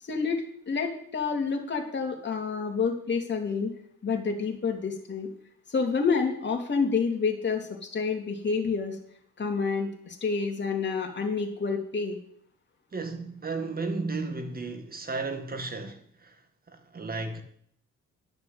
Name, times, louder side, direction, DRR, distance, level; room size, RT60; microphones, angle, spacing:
voice 1, 0.1-3.7 4.0-5.3 5.7-9.0 9.4-12.2, left 5 dB, 35° left, 3.0 m, -28 dB
voice 2, 12.9-16.4 16.7-17.4, right 3 dB, 30° right, 2.0 m, -34 dB
11.0 x 6.7 x 8.0 m
cardioid pair, 90°, 30 cm